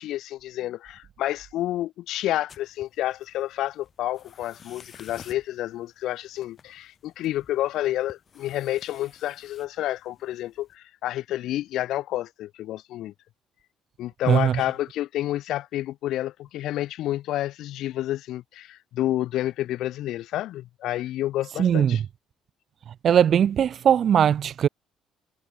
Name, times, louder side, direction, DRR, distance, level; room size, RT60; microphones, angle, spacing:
voice 1, 0.0-13.1 14.0-22.0, left 14 dB, 75° left, 0.8 m, -29 dB
sound 1, 2.5-10.8, left 7 dB, 40° left, 3.1 m, -53 dB
voice 2, 14.3-14.6 21.6-22.0 23.0-24.7, right 9 dB, 50° right, 0.5 m, -20 dB
cardioid pair, 120°, 0 cm